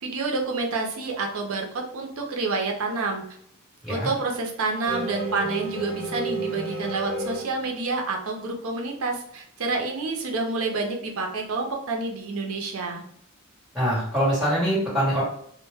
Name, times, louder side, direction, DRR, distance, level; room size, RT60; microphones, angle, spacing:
voice 1, 0.0-3.2 3.9-13.0, right 3 dB, 75° right, 2 dB, 0.5 m, -28 dB
sound 1, 4.9-7.9, right 2 dB, 25° right, 0.6 m, -31 dB
voice 2, 13.7-15.2, equal, ahead, -8 dB, 1.2 m, -23 dB
2.1 x 2.0 x 3.2 m, 0.67 s
head